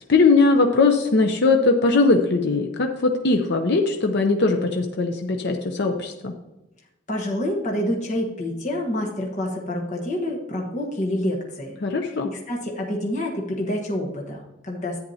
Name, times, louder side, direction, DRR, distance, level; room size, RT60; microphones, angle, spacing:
voice 1, 0.0-6.3 11.8-12.3, left 3 dB, 60° left, 4 dB, 0.6 m, -20 dB
voice 2, 7.1-11.8 12.2-15.0, left 1 dB, 40° left, 0 dB, 1.2 m, -27 dB
10.5 x 9.4 x 2.8 m, 0.94 s
head